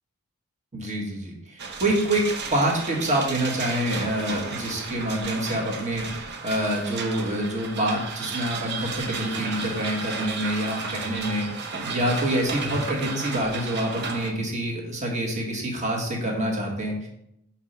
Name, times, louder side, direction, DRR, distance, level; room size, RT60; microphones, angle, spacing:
voice 1, 0.7-2.2 2.5-17.1, right 1 dB, 30° right, -1 dB, 1.6 m, -27 dB
sound 1, 1.6-14.3, right 4 dB, 50° right, 0.9 m, -34 dB
5.9 x 4.4 x 5.3 m, 0.78 s
head